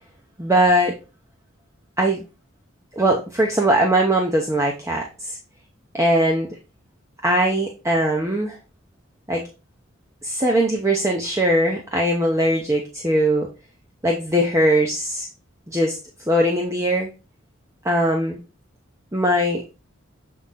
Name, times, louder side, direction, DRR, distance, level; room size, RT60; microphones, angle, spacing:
voice 1, 0.4-0.9 2.0-2.2 3.0-5.4 5.9-6.5 7.2-8.6 9.3-9.4 10.2-13.5 14.0-15.3 15.7-16.0 16.3-17.1 17.8-18.4 19.1-19.6, right 1 dB, 15° right, 0 dB, 0.8 m, -20 dB
7.2 x 3.8 x 4.1 m, 0.31 s
head